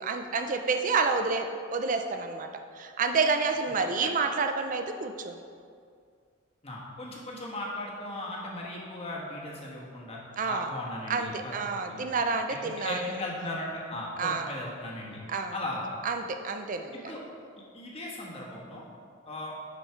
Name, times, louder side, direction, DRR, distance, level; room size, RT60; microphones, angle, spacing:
voice 1, 0.0-2.5 2.8-5.4 10.4-10.7 11.1-13.2 14.2-14.5 15.3-15.6 16.0-17.1, right 4 dB, 40° right, 6 dB, 0.5 m, -29 dB
voice 2, 6.6-10.2 10.5-12.1 12.6-15.2 15.5-15.9 17.0-17.2 17.7-18.8 19.3-19.6, left 1 dB, 30° left, -3 dB, 1.4 m, -37 dB
10.5 x 4.4 x 4.5 m, 2.2 s
head